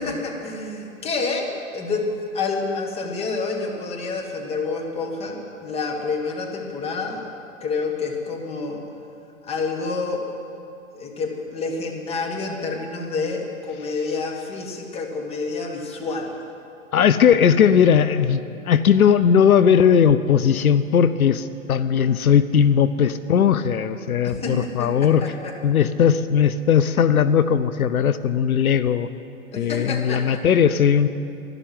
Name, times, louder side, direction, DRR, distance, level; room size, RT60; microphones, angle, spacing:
voice 1, 0.0-2.1 2.3-7.3 7.6-8.8 9.4-10.2 10.9-16.3 24.2-25.6 29.5-30.4, left 4 dB, 15° left, 1 dB, 1.6 m, -28 dB
voice 2, 16.9-18.4 18.7-25.3 25.6-29.1 29.6-31.1, left 8 dB, 85° left, 13 dB, 0.7 m, -18 dB
12.5 x 12.0 x 9.1 m, 2.6 s
hypercardioid pair, 135°, 42 cm